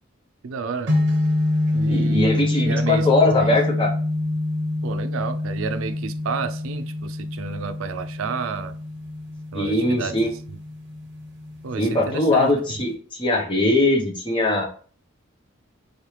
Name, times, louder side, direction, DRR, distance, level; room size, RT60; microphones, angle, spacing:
voice 1, 0.4-1.0 1.7-3.1 3.4-3.6 4.8-8.8 9.5-10.1 11.6-12.5, right 5 dB, 75° right, 10 dB, 0.4 m, -31 dB
sound 1, 0.9-12.9, left 2 dB, 55° right, 1.0 m, -26 dB
voice 2, 1.8-3.9 9.5-10.3 11.8-14.6, left 2 dB, 25° left, -1 dB, 1.0 m, -21 dB
4.5 x 3.2 x 2.9 m, 0.43 s
head